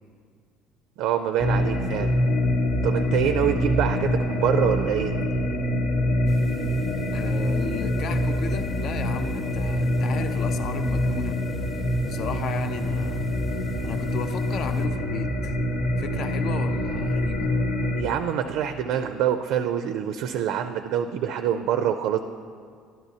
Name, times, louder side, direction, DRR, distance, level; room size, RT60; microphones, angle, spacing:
voice 1, 1.0-2.1 2.8-5.1 18.0-22.2, right 9 dB, 70° right, 8 dB, 0.4 m, -25 dB
sound 1, 1.4-18.0, left 1 dB, 85° left, 1.0 m, -25 dB
sound 2, 2.7-17.6, right 4 dB, 15° right, 0.6 m, -42 dB
sound 3, 6.3-14.9, left 1 dB, 25° left, 0.9 m, -42 dB
voice 2, 7.1-11.4 12.0-13.3 13.8-15.5 16.0-17.5, left 6 dB, 55° left, 9 dB, 0.5 m, -34 dB
12.0 x 10.5 x 2.8 m, 2.1 s
supercardioid pair, 105°, 0 cm